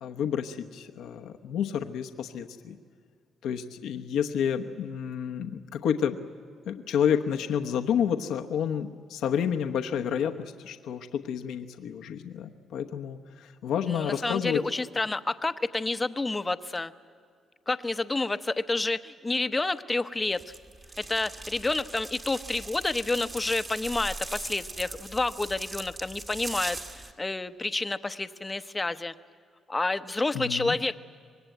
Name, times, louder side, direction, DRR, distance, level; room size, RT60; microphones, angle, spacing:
voice 1, 0.0-2.7 3.4-6.2 6.7-14.6 30.3-30.8, left 8 dB, 80° left, 4 dB, 1.0 m, -30 dB
voice 2, 13.9-16.9 17.7-20.4 21.1-29.1 29.7-31.0, left 2 dB, 20° left, 11 dB, 0.9 m, -29 dB
sound 1, 20.3-27.1, right 2 dB, 30° right, 2.1 m, -40 dB
25.0 x 20.5 x 9.2 m, 2.3 s
cardioid pair, 90°, 0 cm